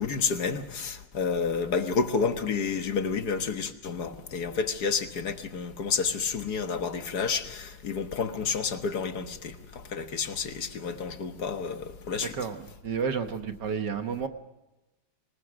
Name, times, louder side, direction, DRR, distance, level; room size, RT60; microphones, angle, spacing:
voice 1, 0.0-9.5 9.9-12.3, left 5 dB, 50° left, 7 dB, 1.8 m, -30 dB
voice 2, 12.2-14.3, right 6 dB, 55° right, 7 dB, 1.6 m, -31 dB
25.5 x 20.0 x 6.3 m, 1.0 s
omnidirectional pair, 2.4 m